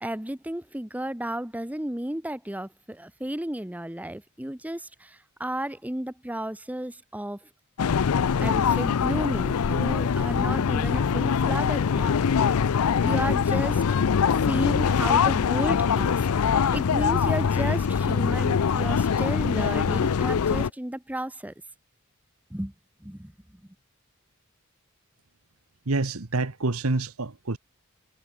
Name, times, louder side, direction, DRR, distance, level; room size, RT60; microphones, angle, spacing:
voice 1, 0.0-7.4 8.4-12.6 13.0-14.0 14.5-21.5 22.5-22.7 23.0-23.3, right 1 dB, 5° right, 0.8 m, -33 dB
sound 1, 7.8-20.7, left 6 dB, 85° left, 0.5 m, -23 dB
voice 2, 25.9-27.6, right 3 dB, 75° right, 1.3 m, -27 dB
head